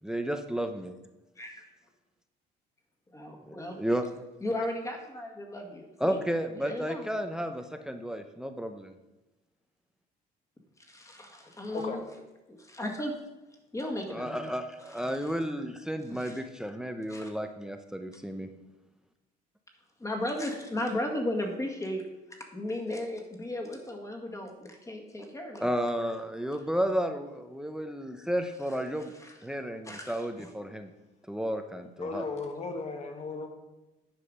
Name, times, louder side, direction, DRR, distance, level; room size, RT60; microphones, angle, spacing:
voice 1, 0.0-0.9 3.5-4.0 6.0-8.9 14.1-18.5 25.6-29.1 29.4-30.9 31.3-32.2, equal, 5° right, 7 dB, 0.6 m, -32 dB
voice 2, 3.1-3.8 4.4-6.2 6.5-7.1 10.9-12.0 12.5-13.1 13.7-14.5 15.0-15.1 16.2-16.4 17.1-17.3 20.0-22.0 22.5-25.7 29.2-29.3 29.9-30.5, left 1 dB, 20° left, 3 dB, 1.8 m, -35 dB
voice 3, 32.0-33.5, left 3 dB, 40° left, 4 dB, 1.6 m, -36 dB
9.8 x 5.7 x 5.3 m, 1.0 s
cardioid pair, 110°, 17 cm